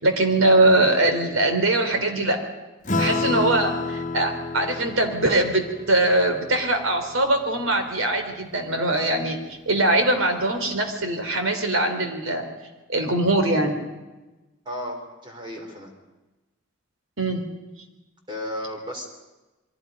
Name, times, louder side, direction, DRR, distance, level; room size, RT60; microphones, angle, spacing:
voice 1, 0.0-2.4 3.0-9.4 9.7-12.4 12.9-13.8 17.2-17.4, right 2 dB, 85° right, 6 dB, 3.4 m, -22 dB
Acoustic guitar / Strum, 2.9-7.7, left 3 dB, 35° left, 1.7 m, -30 dB
voice 2, 14.7-15.9 18.3-19.0, equal, 25° right, 1 dB, 4.1 m, -34 dB
28.0 x 23.0 x 5.3 m, 1.1 s
head